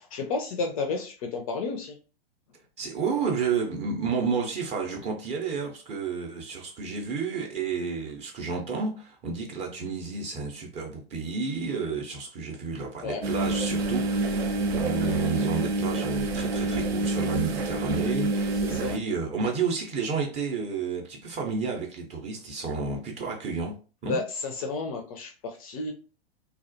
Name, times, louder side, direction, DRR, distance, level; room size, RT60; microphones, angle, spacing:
voice 1, 0.0-2.0 13.0-13.2 14.8-15.0 18.6-19.0 24.1-25.9, left 3 dB, 35° left, 3 dB, 0.4 m, -32 dB
voice 2, 2.8-23.7 24.0-24.2, right 5 dB, 20° right, 0 dB, 0.5 m, -31 dB
sound 1, 13.2-19.0, right 2 dB, 75° right, 0.5 m, -27 dB
2.4 x 2.0 x 2.5 m, 0.37 s
figure-of-eight pair, 100°, 31 cm